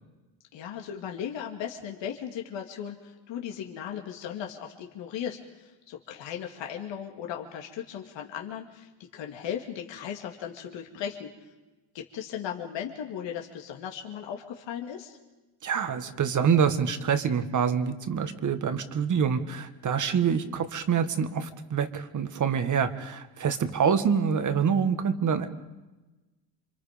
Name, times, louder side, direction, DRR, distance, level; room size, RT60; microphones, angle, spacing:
voice 1, 0.5-11.3 11.9-15.2, left 9 dB, 70° left, 1 dB, 2.5 m, -37 dB
voice 2, 15.6-25.5, right 7 dB, 40° right, 10 dB, 1.8 m, -26 dB
28.0 x 25.5 x 5.2 m, 1.1 s
cardioid pair, 120°, 46 cm